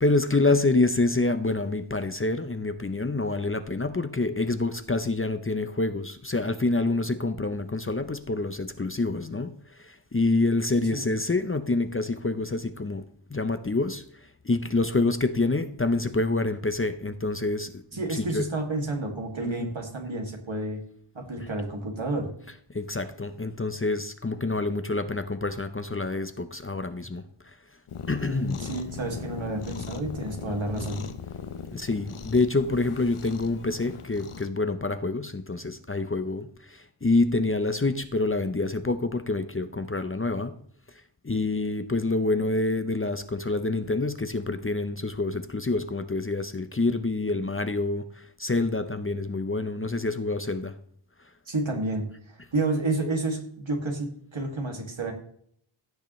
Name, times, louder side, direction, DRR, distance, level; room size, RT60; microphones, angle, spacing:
voice 1, 0.0-13.0 13.3-14.0 14.4-18.5 19.4-19.7 21.4-21.5 22.5-27.6 28.1-28.6 30.5-30.8 31.7-40.6 41.2-50.7, left 2 dB, 25° left, 10 dB, 0.7 m, -27 dB
voice 2, 17.9-20.8 21.1-22.3 28.3-31.0 51.5-55.1, right 2 dB, 65° right, 1 dB, 2.4 m, -30 dB
Cat, 27.9-34.5, left 6 dB, 85° left, 0.9 m, -39 dB
15.5 x 6.7 x 3.2 m, 0.63 s
wide cardioid pair, 60°, 49 cm